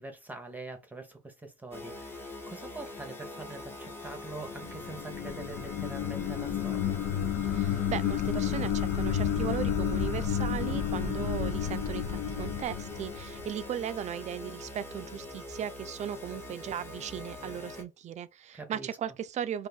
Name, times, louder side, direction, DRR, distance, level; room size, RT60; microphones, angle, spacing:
voice 1, 0.0-7.0 18.5-18.9, right 2 dB, 10° right, 0.9 m, -44 dB
sound 1, 1.7-17.8, left 2 dB, 15° left, 1.1 m, -43 dB
sound 2, 4.4-13.7, left 8 dB, 80° left, 0.7 m, -31 dB
voice 2, 7.5-19.7, right 9 dB, 45° right, 0.4 m, -37 dB
2.6 x 2.6 x 3.7 m
cardioid pair, 110°, 17 cm